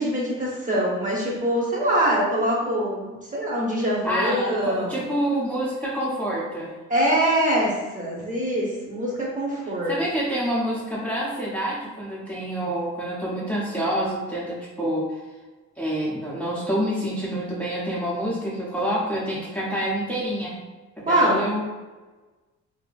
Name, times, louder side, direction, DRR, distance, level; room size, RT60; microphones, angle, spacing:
voice 1, 0.0-5.0 6.9-9.9 21.0-21.4, right 1 dB, 25° right, -3 dB, 0.9 m, -24 dB
voice 2, 4.0-6.7 9.9-15.2 15.8-20.6 21.0-21.6, equal, 5° left, -7 dB, 0.6 m, -27 dB
2.6 x 2.5 x 2.4 m, 1.2 s
cardioid pair, 90°, 30 cm